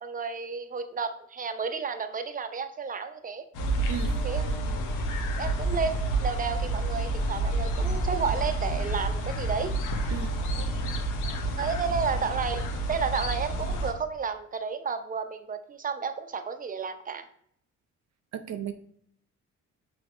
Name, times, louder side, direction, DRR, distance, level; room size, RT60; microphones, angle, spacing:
voice 1, 0.0-3.4 4.2-4.7 5.4-9.7 11.6-12.6 12.9-17.3, right 5 dB, 25° right, 9 dB, 0.7 m, -32 dB
sound 1, 3.5-13.9, right 2 dB, 80° left, 1.1 m, -29 dB
voice 2, 10.1-10.4 18.3-18.7, right 9 dB, 65° right, 9 dB, 0.6 m, -35 dB
6.2 x 3.3 x 4.9 m, 0.66 s
cardioid pair, 90°, 30 cm